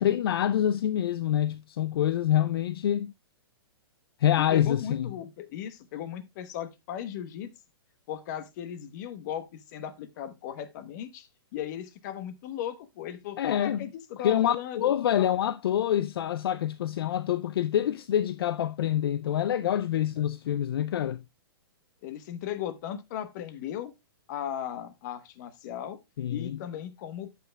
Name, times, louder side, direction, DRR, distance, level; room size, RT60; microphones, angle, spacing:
voice 1, 0.0-3.1 4.2-5.1 13.4-13.9 14.2-21.2 26.2-26.6, left 10 dB, 70° left, 0.4 m, -26 dB
voice 2, 4.4-7.5 8.1-11.3 11.5-14.9 15.2-15.4 22.0-23.9 24.3-26.0 26.3-27.3, left 10 dB, 45° left, 1.1 m, -37 dB
13.5 x 5.8 x 2.2 m
hypercardioid pair, 130°, 13 cm